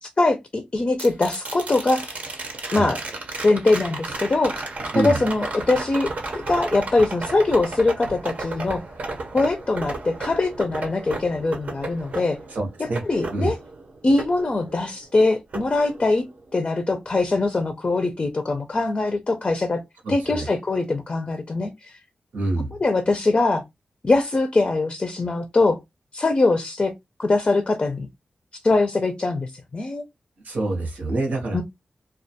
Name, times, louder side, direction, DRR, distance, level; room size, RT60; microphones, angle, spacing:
voice 1, 0.0-2.2 2.7-3.0 3.4-4.6 4.9-8.8 9.3-12.4 12.8-13.6 14.0-16.3 16.5-19.8 20.1-21.9 22.8-23.6 24.0-25.8 26.1-26.9 27.2-28.1 28.6-30.0 31.5-31.6, left 2 dB, 40° left, 0.4 m, -22 dB
sound 1, 1.0-15.1 15.5-16.6 18.8-18.9, right 2 dB, 65° right, 0.6 m, -34 dB
voice 2, 12.5-13.0 13.3-13.5 20.0-20.5 22.3-22.7 30.4-31.6, right 2 dB, 90° right, 0.9 m, -26 dB
2.3 x 2.2 x 2.7 m
cardioid pair, 65°, 3 cm